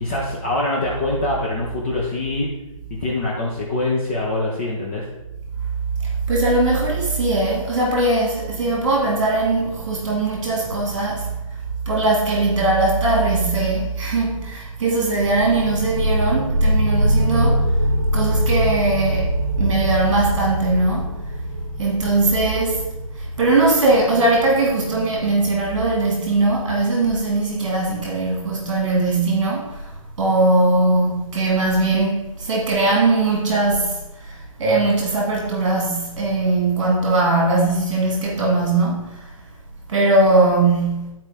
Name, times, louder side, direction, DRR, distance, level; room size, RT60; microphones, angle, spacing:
voice 1, 0.0-2.5 2.9-5.1, left 2 dB, 20° left, -3 dB, 0.7 m, -24 dB
voice 2, 6.0-11.3 11.9-17.7 18.1-21.1 21.8-29.9 30.2-39.1 39.9-41.1, right 2 dB, 45° right, -2 dB, 2.0 m, -20 dB
sound 1, 15.2-26.6, equal, 65° right, 0.8 m, -23 dB
11.5 x 4.4 x 3.4 m, 0.96 s
hypercardioid pair, 170°, 18 cm